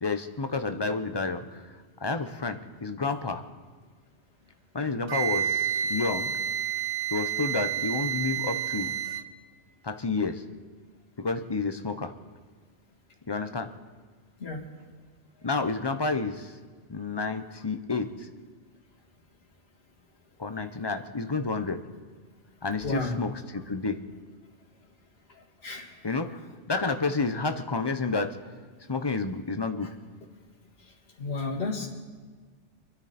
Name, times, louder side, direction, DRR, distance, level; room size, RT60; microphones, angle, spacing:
voice 1, 0.0-1.6 2.0-3.4 4.7-6.3 7.1-8.9 9.8-10.4 11.2-12.1 13.3-13.7 15.4-16.5 16.9-18.3 20.4-21.8 22.6-24.0 26.0-26.4 26.7-28.4 28.9-29.9, left 3 dB, 25° left, 7 dB, 0.8 m, -30 dB
Wind instrument woodwind instrument, 5.1-9.3, right 9 dB, 45° right, 0.7 m, -29 dB
voice 2, 22.8-23.2 25.6-25.9 31.2-31.9, left 3 dB, 55° left, -8 dB, 2.4 m, -31 dB
27.0 x 10.5 x 4.4 m, 1.5 s
omnidirectional pair, 1.2 m